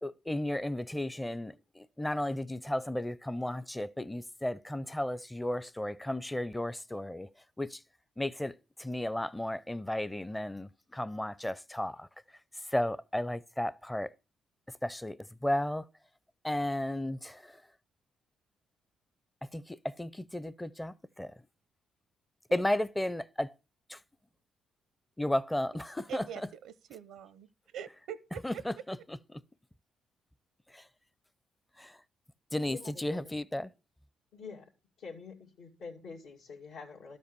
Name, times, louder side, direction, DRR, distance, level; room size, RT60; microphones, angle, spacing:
voice 1, 0.0-7.3 7.6-7.8 8.2-12.1 12.7-14.1 14.8-15.2 15.4-15.8 16.4-17.5 19.5-21.3 22.5-23.5 23.9-24.0 25.2-26.2 28.4-28.7 30.7-30.8 31.8-31.9 32.5-33.7, left 1 dB, 10° left, 0.5 m, -34 dB
voice 2, 26.1-28.6, right 9 dB, 90° right, 0.7 m, -44 dB
voice 3, 32.7-33.7 34.3-34.7 35.0-37.2, left 5 dB, 80° left, 2.4 m, -47 dB
12.5 x 5.3 x 6.8 m
cardioid pair, 90°, 0 cm